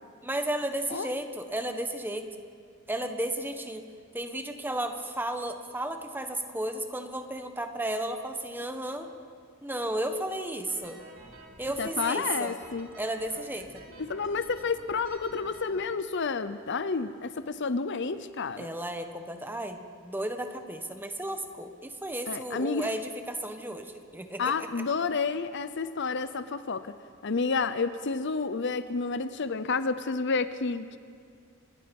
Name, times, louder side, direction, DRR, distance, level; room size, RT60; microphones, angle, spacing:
voice 1, 0.2-2.3 2.9-3.8 4.1-9.1 9.6-11.0 11.6-12.6 13.0-13.7 18.6-24.7, right 1 dB, 10° right, 6 dB, 1.4 m, -33 dB
sound 1, 10.7-15.8, right 1 dB, 70° right, 3.8 m, -51 dB
voice 2, 11.8-12.9 14.0-18.7 22.3-22.9 24.4-26.9 27.2-31.0, left 4 dB, 55° left, 12 dB, 0.7 m, -30 dB
27.5 x 20.0 x 5.4 m, 2.2 s
head